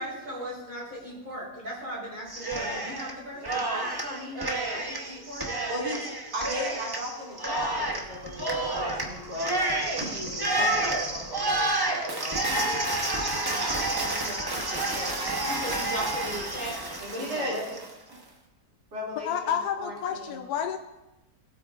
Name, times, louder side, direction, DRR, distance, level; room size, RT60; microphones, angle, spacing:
voice 1, 0.0-5.4 7.2-7.3 9.8-9.9 10.2-10.3 10.9-11.1 11.4-11.7 12.0-13.1 13.4-15.2 15.5-17.8, right 1 dB, 50° right, -6 dB, 3.5 m, -38 dB
Cheering, 2.3-3.1 3.4-17.9, right 2 dB, 25° right, 0.5 m, -30 dB
voice 2, 5.7-12.4 14.8-14.9 17.1-17.5 18.1-18.2 18.9-20.4, equal, 65° right, -5 dB, 3.2 m, -36 dB
voice 3, 19.2-20.8, left 8 dB, 70° left, 5 dB, 1.0 m, -30 dB
16.0 x 8.4 x 2.4 m, 0.98 s
omnidirectional pair, 1.9 m